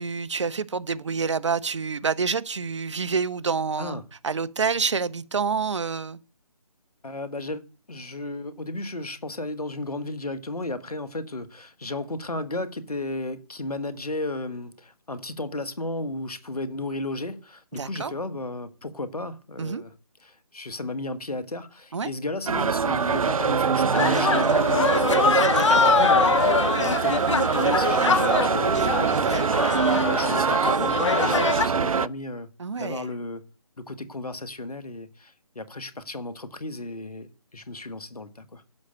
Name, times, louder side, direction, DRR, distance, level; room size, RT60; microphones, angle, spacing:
voice 1, 0.0-6.2 17.7-18.1 19.6-19.8 21.9-22.1 25.5-25.8 29.1-29.5 32.6-33.1, right 5 dB, 50° right, 0.9 m, -28 dB
voice 2, 7.0-7.6 7.9-19.9 20.2-26.4 26.8-32.5 32.8-33.4 33.8-38.6, left 2 dB, 85° left, 1.6 m, -34 dB
sound 1, 22.5-32.1, right 5 dB, 65° right, 0.5 m, -23 dB
sound 2, 23.9-31.7, left 6 dB, 55° left, 0.5 m, -24 dB
11.5 x 6.5 x 8.2 m
figure-of-eight pair, 155°, 19 cm